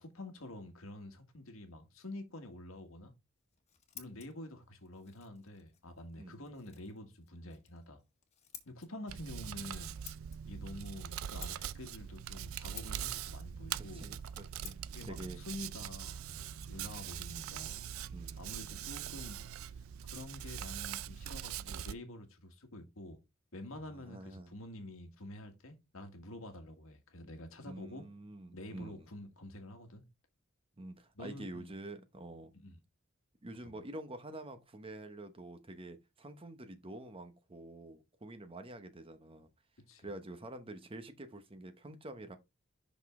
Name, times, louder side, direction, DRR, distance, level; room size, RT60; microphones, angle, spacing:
voice 1, 0.0-3.1 3.9-8.0 8.6-9.9 10.4-14.1 14.9-17.8 18.4-19.7 20.1-23.2 23.5-28.0 28.5-30.0 31.1-31.7 32.5-32.8 33.6-33.7 39.9-40.1, left 1 dB, 80° left, 1.7 m, -48 dB
Scissors, 3.4-16.9, left 8 dB, 35° left, 1.3 m, -57 dB
voice 2, 6.2-6.5 13.7-15.4 18.1-18.4 23.9-24.5 27.6-29.1 30.8-32.5 33.4-39.5 40.0-42.4, right 1 dB, 25° right, 1.0 m, -47 dB
Hands, 9.1-21.9, right 9 dB, 85° right, 0.4 m, -42 dB
6.0 x 5.3 x 3.7 m
head